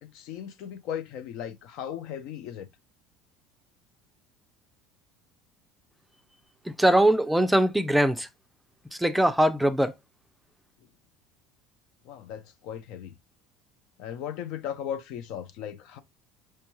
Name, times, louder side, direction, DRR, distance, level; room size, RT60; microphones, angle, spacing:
voice 1, 0.0-2.7 12.1-13.1 14.0-16.0, left 9 dB, 70° left, 0.4 m, -37 dB
voice 2, 6.8-8.3 9.0-9.9, right 1 dB, 5° right, 0.4 m, -21 dB
4.4 x 2.2 x 2.9 m
supercardioid pair, 105°, 0 cm